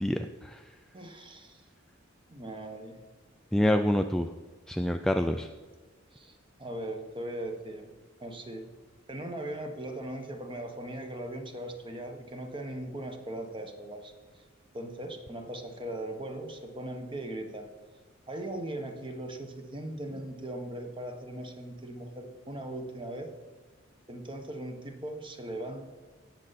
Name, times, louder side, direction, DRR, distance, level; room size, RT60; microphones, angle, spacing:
voice 1, 0.0-0.6 3.5-4.3 4.7-5.5, left 1 dB, ahead, 5 dB, 0.3 m, -27 dB
voice 2, 0.9-1.6 2.3-3.0 6.1-7.9 8.2-8.7 9.1-14.4 14.7-17.7 18.3-23.3 24.1-25.9, right 1 dB, 25° right, 5 dB, 1.2 m, -39 dB
17.0 x 6.7 x 4.1 m, 1.3 s
head